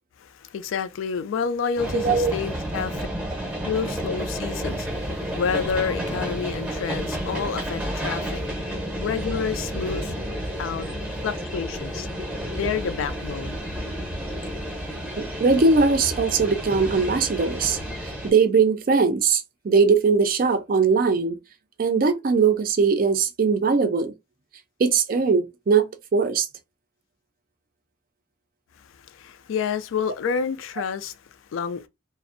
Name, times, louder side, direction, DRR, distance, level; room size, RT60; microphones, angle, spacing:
voice 1, 0.2-3.1 3.6-8.4 9.0-10.1 10.6-10.9 11.2-12.1 12.6-13.6 29.1-31.2 31.5-31.8, left 6 dB, 80° left, 0.3 m, -29 dB
sound 1, 1.8-18.3, equal, 5° right, 0.6 m, -31 dB
voice 2, 1.9-2.3 15.2-21.4 21.8-24.1 24.8-26.5, right 5 dB, 45° right, 0.4 m, -20 dB
2.5 x 2.0 x 2.4 m
head